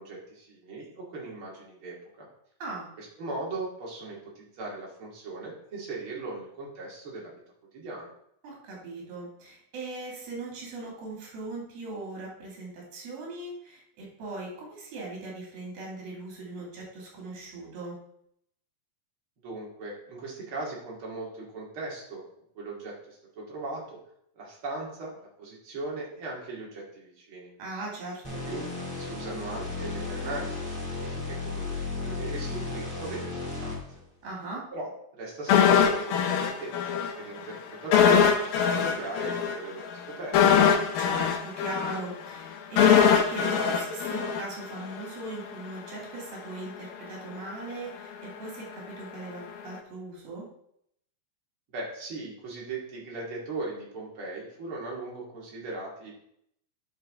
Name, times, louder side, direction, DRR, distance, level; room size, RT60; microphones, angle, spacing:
voice 1, 0.0-2.3 3.0-7.3 7.7-8.1 19.4-22.2 22.5-24.0 24.3-27.5 28.5-28.6 29.0-33.8 34.7-34.9 35.2-40.6 51.7-56.1, right 2 dB, 40° right, -3 dB, 2.7 m, -38 dB
voice 2, 8.4-18.0 27.6-28.4 34.2-34.7 41.0-50.5, right 2 dB, 80° right, -2 dB, 4.3 m, -39 dB
sound 1, 28.2-34.0, left 3 dB, ahead, 2.3 m, -34 dB
sound 2, 35.5-37.1 37.4-37.5 37.9-45.0 45.3-45.4, left 7 dB, 80° left, 2.6 m, -22 dB
11.5 x 5.3 x 3.6 m, 0.72 s
omnidirectional pair, 4.2 m